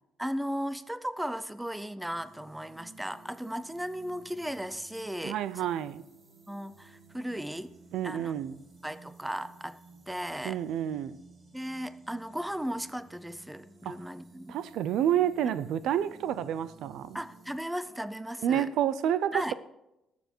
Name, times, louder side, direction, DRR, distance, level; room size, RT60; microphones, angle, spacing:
voice 1, 0.2-5.4 6.5-7.7 8.0-8.3 8.8-9.8 10.1-10.6 11.5-14.6 17.1-18.7 19.3-19.5, equal, 5° right, 0.4 m, -36 dB
sound 1, 2.1-17.6, right 3 dB, 25° right, 2.0 m, -55 dB
voice 2, 5.2-6.0 7.9-8.6 10.4-11.2 13.8-13.9 14.5-17.2 18.4-19.5, right 10 dB, 75° right, 0.6 m, -29 dB
20.0 x 7.1 x 4.5 m
cardioid pair, 155°, 0 cm